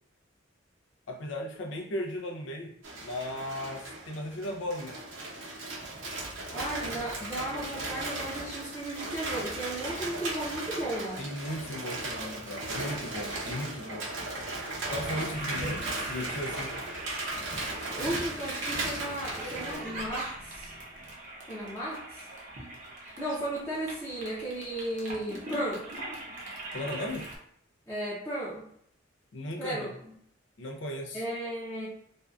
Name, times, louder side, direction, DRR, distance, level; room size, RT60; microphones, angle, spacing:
voice 1, 1.1-2.7 3.0-5.0 11.2-14.1 14.9-16.8 26.7-27.3 29.3-29.9 30.6-31.2, left 1 dB, 85° left, 2 dB, 0.5 m, -36 dB
sound 1, 2.8-19.8, right 2 dB, 85° right, 0.7 m, -37 dB
voice 2, 6.5-11.2 17.9-20.7 21.5-22.3 23.0-25.9 27.9-28.6 29.6-29.9 31.1-31.9, right 1 dB, 15° left, -9 dB, 0.6 m, -35 dB
Toilet flush, 15.3-27.4, right 1 dB, 45° right, 0.6 m, -41 dB
2.5 x 2.2 x 2.3 m, 0.69 s
head